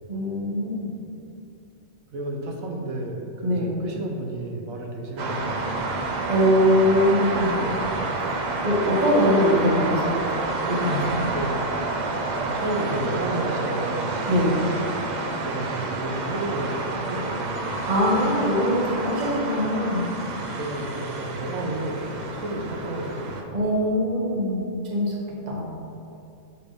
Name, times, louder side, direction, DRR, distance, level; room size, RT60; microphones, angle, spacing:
voice 1, 0.1-0.9 3.4-3.7 6.3-7.6 8.2-8.3 8.6-10.2 10.6-11.3 14.3-14.6 17.9-20.1 23.5-25.1 25.5-25.7, equal, 35° right, -3 dB, 1.1 m, -22 dB
voice 2, 2.1-5.9 7.5-7.9 11.3-11.6 12.4-14.3 15.4-17.8 20.3-23.6, right 1 dB, 90° right, 1 dB, 1.2 m, -32 dB
sound 1, 5.2-23.4, right 3 dB, 50° right, 0.5 m, -29 dB
7.0 x 3.4 x 5.1 m, 2.6 s
omnidirectional pair, 1.4 m